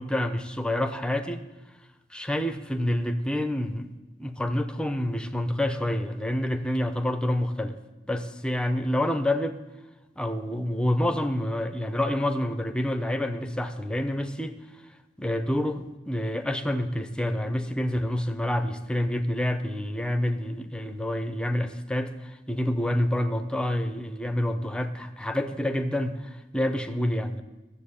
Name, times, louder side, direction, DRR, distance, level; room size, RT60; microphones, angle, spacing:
voice 1, 0.0-1.4 2.1-3.9 4.2-7.8 8.1-9.6 10.2-14.6 15.2-27.4, left 1 dB, 5° left, 8 dB, 0.7 m, -28 dB
13.0 x 7.4 x 8.6 m, 1.1 s
head